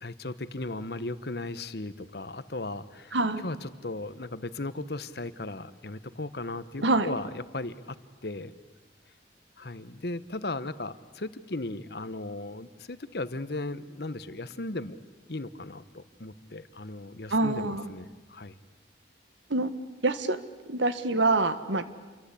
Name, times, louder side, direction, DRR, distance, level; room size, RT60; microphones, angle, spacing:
voice 1, 0.0-3.1 3.4-8.0 8.2-8.5 9.6-15.0 15.3-18.6, left 2 dB, 55° left, 14 dB, 1.1 m, -36 dB
voice 2, 3.1-3.4 6.8-7.1 17.3-17.9 19.5-19.7 20.0-20.4 20.7-21.8, right 2 dB, 80° right, 11 dB, 1.6 m, -25 dB
28.5 x 24.0 x 8.5 m, 1.3 s
head